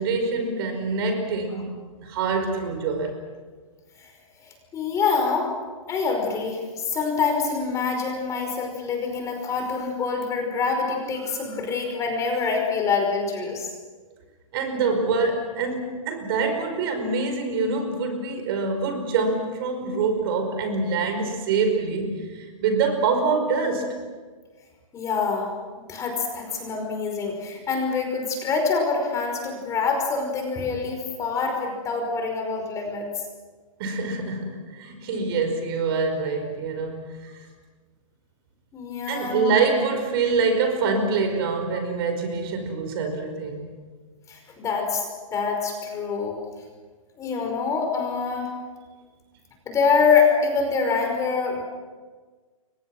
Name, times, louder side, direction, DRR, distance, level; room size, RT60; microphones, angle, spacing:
voice 1, 0.0-3.1 14.5-23.9 33.8-37.3 39.1-43.8, right 4 dB, 45° right, 6 dB, 5.4 m, -25 dB
voice 2, 4.4-5.5 5.9-13.7 24.9-25.5 25.9-33.1 38.7-39.5 44.3-45.0 45.3-46.4 47.2-48.5 49.7-51.6, left 5 dB, 20° left, 2 dB, 5.4 m, -25 dB
29.0 x 24.0 x 6.2 m, 1.4 s
hypercardioid pair, 145°, 17 cm